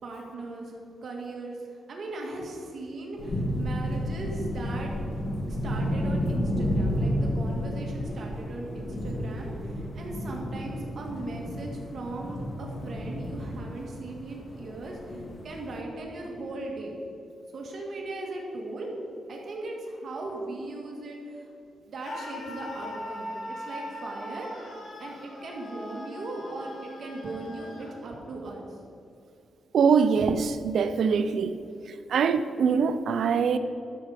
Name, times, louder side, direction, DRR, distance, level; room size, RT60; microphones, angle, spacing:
voice 1, 0.0-0.7 1.0-1.6 1.9-4.9 5.5-16.9 17.5-18.9 19.3-21.4 21.9-24.5 25.0-28.7, right 2 dB, 60° right, -1 dB, 2.1 m, -38 dB
sound 1, 3.2-15.8, equal, 45° left, 2.1 m, -31 dB
Screaming, 22.0-27.9, left 1 dB, 85° left, 2.8 m, -40 dB
voice 2, 29.7-31.6 32.1-33.6, right 6 dB, 80° right, 11 dB, 0.6 m, -23 dB
12.0 x 6.8 x 5.1 m, 2.7 s
cardioid pair, 95°, 0 cm